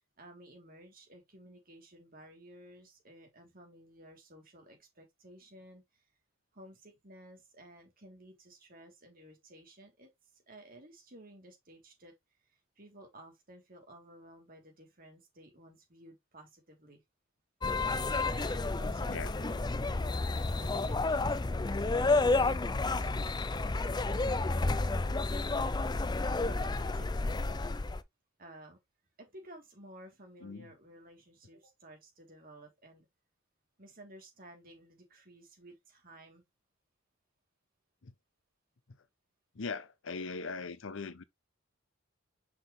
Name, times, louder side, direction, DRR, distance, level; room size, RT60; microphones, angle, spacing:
voice 1, 0.0-6.1 6.5-12.1 12.4-17.0 18.2-25.7 26.4-27.4 28.4-28.8 29.2-33.1 33.8-36.4, right 1 dB, 45° right, 3.2 m, -55 dB
sound 1, 17.6-28.0, left 3 dB, 20° left, 0.5 m, -31 dB
voice 2, 39.5-41.2, left 4 dB, 70° left, 0.7 m, -40 dB
6.1 x 5.8 x 3.2 m
head